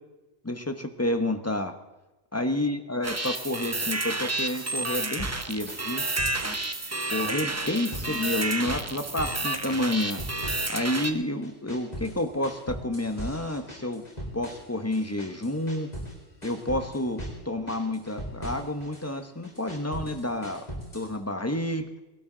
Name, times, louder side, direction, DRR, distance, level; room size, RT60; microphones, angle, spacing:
voice 1, 0.4-1.7 2.3-6.0 7.1-10.2 10.7-14.0 14.3-15.9 16.4-17.2 17.4-20.6 20.9-21.9, left 1 dB, 15° left, 7 dB, 1.0 m, -29 dB
sound 1, 3.0-11.1, right 2 dB, 15° right, 0.7 m, -30 dB
sound 2, 5.2-6.7 6.9-8.2 8.4-9.4 9.7-11.1 11.4-16.1 16.4-17.4 17.7-19.0 19.4-21.1, equal, 35° left, 4.4 m, -39 dB
21.5 x 12.0 x 3.9 m, 1.1 s
omnidirectional pair, 1.2 m